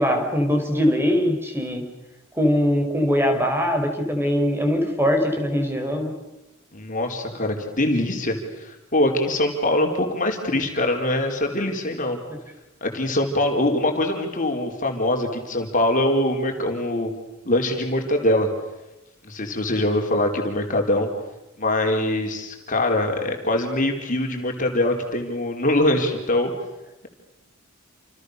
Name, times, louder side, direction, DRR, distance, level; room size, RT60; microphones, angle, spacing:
voice 1, 0.0-1.8 2.3-6.1, equal, 10° right, 4 dB, 5.0 m, -21 dB
voice 2, 6.7-12.2 12.8-17.1 17.4-18.5 19.2-21.1 21.6-26.5, left 1 dB, 40° left, 3 dB, 4.4 m, -23 dB
29.5 x 28.5 x 6.8 m, 0.98 s
head